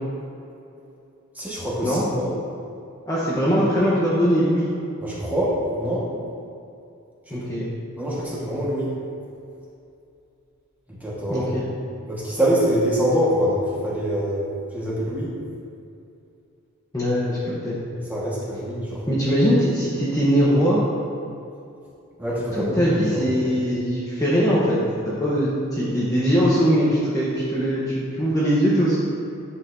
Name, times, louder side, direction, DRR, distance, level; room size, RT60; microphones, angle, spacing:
voice 1, 1.3-2.3 5.0-6.1 7.3-7.4 8.0-8.9 11.0-11.5 12.1-14.4 14.7-15.3 18.1-19.0 22.2-23.2, equal, 5° right, -7 dB, 1.5 m, -24 dB
voice 2, 3.1-4.7 7.3-7.7 11.3-11.6 16.9-17.8 19.1-20.8 22.5-24.8 25.0-29.0, equal, 15° left, -8 dB, 0.9 m, -21 dB
10.5 x 6.5 x 2.7 m, 2.6 s
head